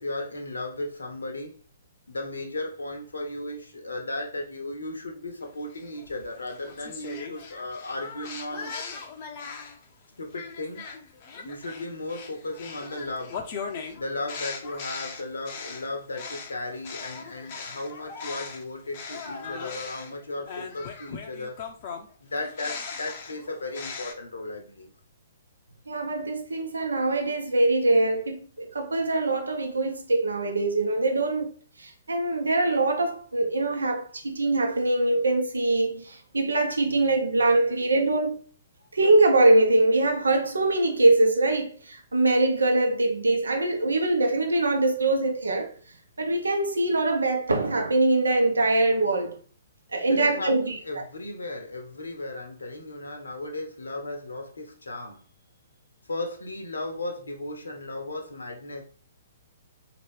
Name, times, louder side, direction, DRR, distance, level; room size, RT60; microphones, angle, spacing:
voice 1, 0.0-1.6 2.1-8.7 10.2-10.8 11.4-13.4 14.0-21.6 22.2-24.9 50.1-55.2 56.1-58.8, left 2 dB, 70° left, 0.9 m, -35 dB
sound 1, 5.7-9.8 10.3-18.6 18.9-24.1, left 5 dB, 40° left, 0.7 m, -39 dB
voice 2, 25.9-31.5 31.8-38.4 38.9-45.7 46.2-49.4 49.9-51.0, right 2 dB, 70° right, 0.9 m, -23 dB
4.3 x 2.9 x 3.1 m
figure-of-eight pair, 120°, 0 cm